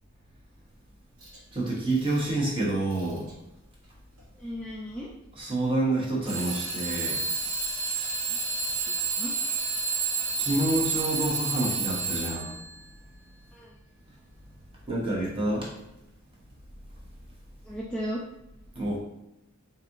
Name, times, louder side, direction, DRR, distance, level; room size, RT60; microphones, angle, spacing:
Alarm / Clock, 1.2-1.4 1.9-2.3 2.9-3.3 4.2-4.3 6.2-12.6, right 4 dB, 70° right, 1.4 m, -30 dB
voice 1, 1.5-3.3 5.4-7.2 10.4-12.5 14.9-15.7 18.7-19.0, right 2 dB, 25° right, -3 dB, 0.9 m, -28 dB
voice 2, 4.4-5.1 8.3-8.4 8.9-9.3 13.5-13.8 17.6-18.2, equal, 5° left, -6 dB, 0.4 m, -36 dB
4.0 x 2.7 x 2.5 m, 0.89 s
head